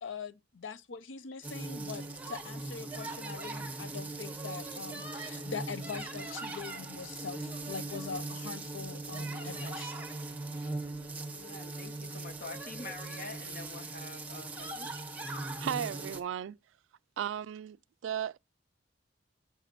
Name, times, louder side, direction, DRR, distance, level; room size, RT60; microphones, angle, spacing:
voice 1, 0.0-9.9, left 5 dB, 80° left, 0.5 m, -43 dB
sound 1, 1.4-16.2, right 2 dB, 10° right, 1.2 m, -40 dB
voice 2, 11.3-14.9, left 3 dB, 50° left, 1.3 m, -46 dB
voice 3, 15.6-16.6 17.2-17.8 18.0-18.4, right 9 dB, 90° right, 0.3 m, -35 dB
6.9 x 5.8 x 4.1 m
head